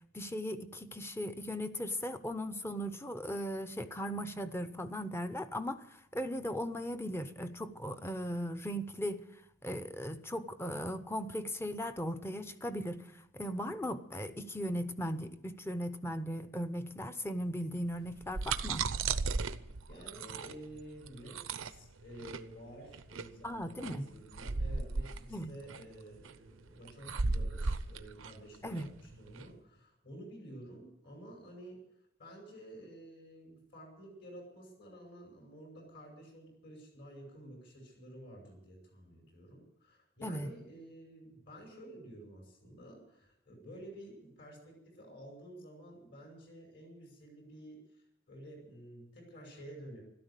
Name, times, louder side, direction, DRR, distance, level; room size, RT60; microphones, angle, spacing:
voice 1, 0.1-9.3 9.6-18.9 23.4-24.1 25.3-25.5 28.6-28.9 40.2-40.5, equal, 10° left, 10 dB, 0.8 m, -38 dB
sound 1, 18.0-29.5, right 4 dB, 85° right, 0.8 m, -36 dB
voice 2, 19.9-31.8 32.2-50.0, right 1 dB, 60° left, 0 dB, 5.8 m, -51 dB
13.0 x 13.0 x 8.2 m, 0.81 s
head